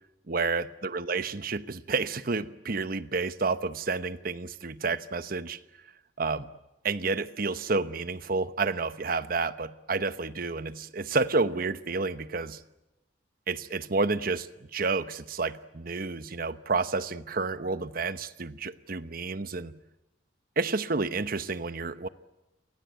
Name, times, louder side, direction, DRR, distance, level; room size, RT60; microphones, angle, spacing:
voice 1, 0.3-5.6 6.2-6.5 6.8-12.6 13.5-19.8 20.6-22.1, right 4 dB, 55° right, 1.0 m, -30 dB
30.0 x 24.0 x 8.1 m
head